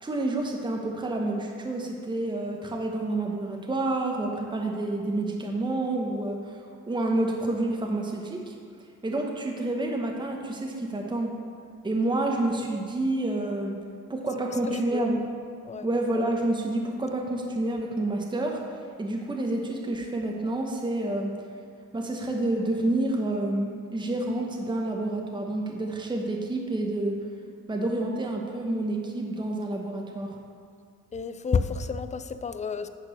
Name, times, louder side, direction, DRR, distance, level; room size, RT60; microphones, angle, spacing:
voice 1, 0.0-6.6 6.9-8.5 9.0-11.3 11.8-13.8 14.1-15.2 15.8-18.6 19.0-21.3 21.9-27.2 27.7-30.3, right 2 dB, 15° right, 0 dB, 1.0 m, -28 dB
voice 2, 14.7-15.1 15.6-15.9 31.1-32.9, left 5 dB, 25° left, 11 dB, 0.4 m, -30 dB
8.8 x 4.5 x 6.3 m, 2.2 s
cardioid pair, 90°, 30 cm